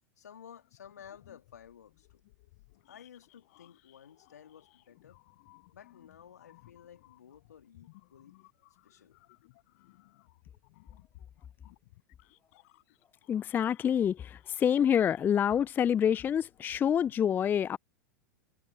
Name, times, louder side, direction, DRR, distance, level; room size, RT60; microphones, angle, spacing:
voice 1, 0.2-2.2 2.9-5.2 5.7-8.3 8.8-9.2, left 8 dB, 80° left, 2.9 m, -54 dB
sound 1, 0.6-17.2, left 22 dB, 60° left, 6.6 m, -62 dB
voice 2, 13.3-17.8, left 9 dB, 20° left, 0.4 m, -27 dB
hypercardioid pair, 95°, 9 cm